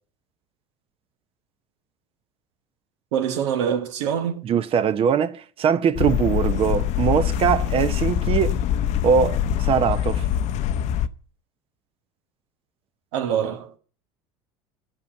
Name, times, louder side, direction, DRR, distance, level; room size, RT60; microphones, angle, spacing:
voice 1, 3.1-4.4 13.1-13.8, right 8 dB, 85° right, 1.3 m, -25 dB
voice 2, 4.4-8.6 9.0-10.2, right 7 dB, 40° right, 0.7 m, -21 dB
sound 1, 6.0-11.1, left 10 dB, 55° left, 0.7 m, -24 dB
11.5 x 5.3 x 8.3 m
supercardioid pair, 110°, 14 cm